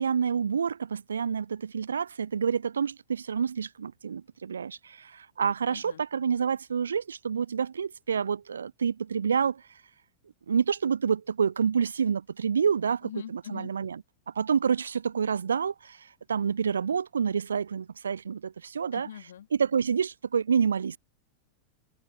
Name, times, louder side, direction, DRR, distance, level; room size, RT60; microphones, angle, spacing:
voice 1, 0.0-9.6 10.5-14.0 14.3-19.1 19.5-21.0, right 6 dB, 70° right, 0.7 m, -28 dB
voice 2, 5.7-6.0 13.0-13.7 18.9-19.5, left 10 dB, 65° left, 2.9 m, -42 dB
figure-of-eight pair, 90°, 0 cm